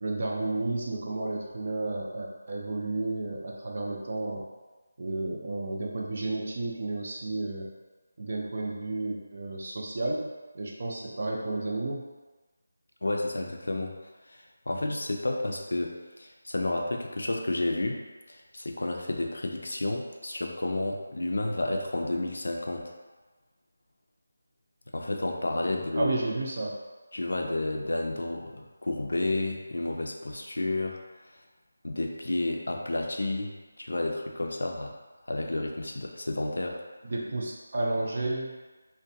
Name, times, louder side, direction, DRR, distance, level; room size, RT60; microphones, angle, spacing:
voice 1, 0.0-4.4 5.0-7.7 8.2-12.0 25.9-26.7 37.0-38.6, right 2 dB, 45° right, -2 dB, 0.5 m, -32 dB
voice 2, 13.0-14.0 14.3-22.9 24.9-26.1 27.1-31.0 31.8-35.0 35.3-36.8, left 2 dB, 80° left, 2 dB, 0.4 m, -31 dB
2.5 x 2.1 x 2.7 m, 1.2 s
figure-of-eight pair, 170°, 0 cm